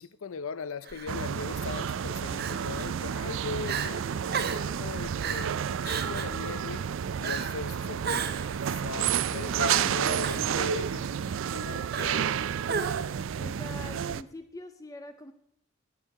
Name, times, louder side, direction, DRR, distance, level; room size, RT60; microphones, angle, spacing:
voice 1, 0.0-4.4 4.8-6.9 7.2-8.3 8.7-11.1 11.5-12.4, left 5 dB, 75° left, 0.5 m, -39 dB
Crying sobbing, 0.9-1.1 2.4-2.9 3.3-3.4 3.6-3.9 4.3-4.7 5.2-5.5 5.8-6.4 7.2-7.6 8.0-8.6 9.6-10.5 11.9-12.3 12.7-13.2, right 6 dB, 45° right, 0.7 m, -33 dB
sound 1, 1.1-14.2, right 8 dB, 65° right, 0.3 m, -31 dB
voice 2, 13.4-15.3, left 2 dB, 15° left, 0.5 m, -44 dB
15.0 x 8.2 x 4.8 m
head